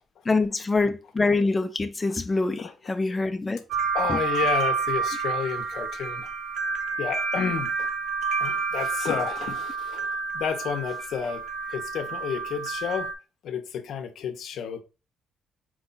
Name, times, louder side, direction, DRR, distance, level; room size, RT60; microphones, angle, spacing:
voice 1, 0.3-3.6 4.1-4.2, left 3 dB, 15° left, 0.4 m, -25 dB
sound 1, 3.7-13.1, right 5 dB, 60° right, 0.6 m, -29 dB
voice 2, 3.9-6.3 7.0-7.9 8.3-11.4 11.7-13.1 13.4-14.8, left 7 dB, 65° left, 0.6 m, -31 dB
4.6 x 2.3 x 3.8 m
cardioid pair, 165°, 0 cm